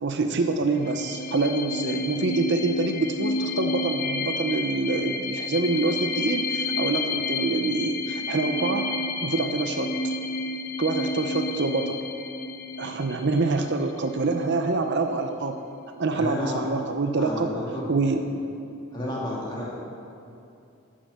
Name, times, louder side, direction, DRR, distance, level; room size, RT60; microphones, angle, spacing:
voice 1, 0.0-8.9 9.2-10.1 10.8-12.0 12.8-15.6 16.0-17.5 17.9-18.2, right 3 dB, 50° right, 6 dB, 0.6 m, -26 dB
sound 1, 0.8-14.2, left 3 dB, 40° left, 0.6 m, -30 dB
voice 2, 16.1-16.6 17.1-18.2 18.9-19.8, left 1 dB, 20° left, -5 dB, 2.4 m, -32 dB
11.5 x 7.5 x 7.0 m, 2.6 s
head